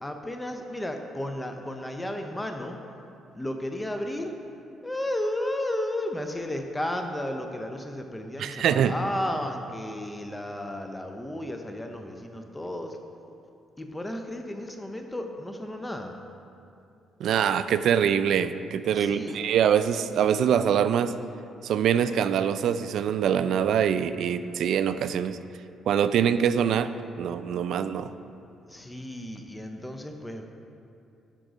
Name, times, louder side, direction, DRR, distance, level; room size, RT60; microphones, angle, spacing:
voice 1, 0.0-2.8 3.3-4.3 4.8-13.0 13.8-16.2 18.9-19.4 28.7-30.5, left 1 dB, 10° left, 4 dB, 0.6 m, -33 dB
voice 2, 8.4-8.9 17.2-21.1 21.6-25.4 25.9-26.9 27.2-28.1, right 8 dB, 75° right, 12 dB, 0.3 m, -24 dB
10.0 x 3.7 x 6.2 m, 2.6 s
cardioid pair, 90°, 0 cm